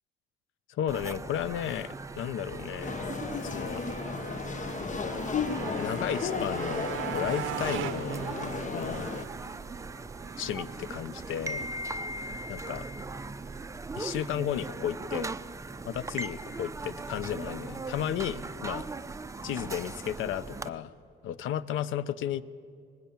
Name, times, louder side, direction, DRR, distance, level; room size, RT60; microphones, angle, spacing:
voice 1, 0.7-2.9 3.4-3.8 5.8-8.2 8.7-9.1 10.4-11.7 12.5-12.8 14.0-15.3 15.9-18.9 19.4-20.9 21.2-22.4, left 10 dB, 80° left, 18 dB, 0.7 m, -33 dB
sound 1, 0.9-20.7, right 2 dB, 15° right, 0.7 m, -39 dB
Motorcycle, 1.5-13.6, right 14 dB, 85° right, 0.5 m, -42 dB
sound 2, 2.8-9.3, left 5 dB, 40° left, 1.0 m, -34 dB
20.5 x 19.0 x 8.8 m, 2.3 s
cardioid pair, 90°, 20 cm